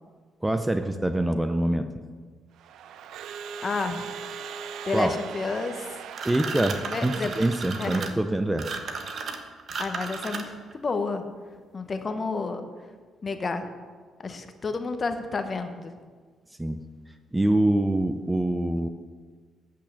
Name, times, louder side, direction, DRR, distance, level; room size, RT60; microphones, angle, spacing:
voice 1, 0.4-1.9 4.9-5.1 6.2-8.8 16.6-16.8 17.3-18.9, right 1 dB, 10° right, 8 dB, 0.5 m, -25 dB
Crowd / Alarm, 2.6-8.1, right 7 dB, 80° right, 0.4 m, -40 dB
voice 2, 3.6-4.0 4.8-5.9 6.8-7.3 7.8-8.1 9.8-10.4 10.7-11.2 11.7-12.7 13.2-13.6 14.2-15.9, left 4 dB, 35° left, 7 dB, 1.0 m, -30 dB
sound 1, 6.1-10.7, right 4 dB, 55° right, 1.1 m, -34 dB
8.6 x 5.8 x 7.1 m, 1.5 s
cardioid pair, 90°, 0 cm